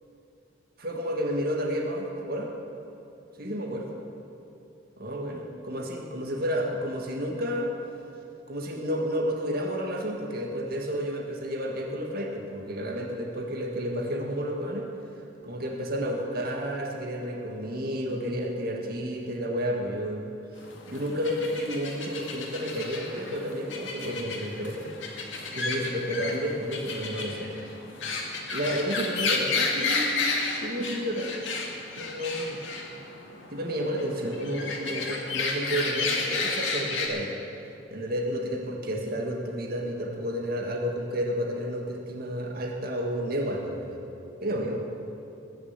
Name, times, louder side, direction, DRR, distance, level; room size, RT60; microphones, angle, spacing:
voice 1, 0.8-2.5 3.4-4.0 5.0-7.7 8.5-14.9 15.4-20.3 20.9-24.9 25.5-27.5 28.5-30.3 30.6-31.3 32.0-32.6 33.5-37.4 37.9-44.0 44.4-44.8, equal, 50° right, 0 dB, 1.8 m, -31 dB
sound 1, 20.6-37.1, left 3 dB, 80° left, 2.0 m, -32 dB
20.0 x 6.8 x 8.2 m, 2.8 s
head